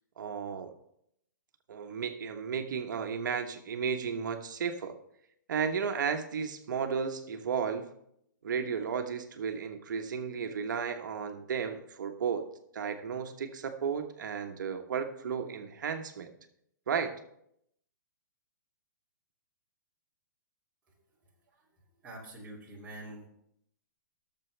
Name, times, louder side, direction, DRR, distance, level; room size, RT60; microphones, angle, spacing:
voice 1, 0.2-0.7 1.7-5.0 5.5-7.9 8.4-12.5 12.7-16.3 16.9-17.2, right 6 dB, 70° right, 6 dB, 1.2 m, -34 dB
voice 2, 22.0-23.3, right 1 dB, 15° right, -6 dB, 2.6 m, -45 dB
18.0 x 7.0 x 3.3 m, 0.75 s
hypercardioid pair, 160°, 11 cm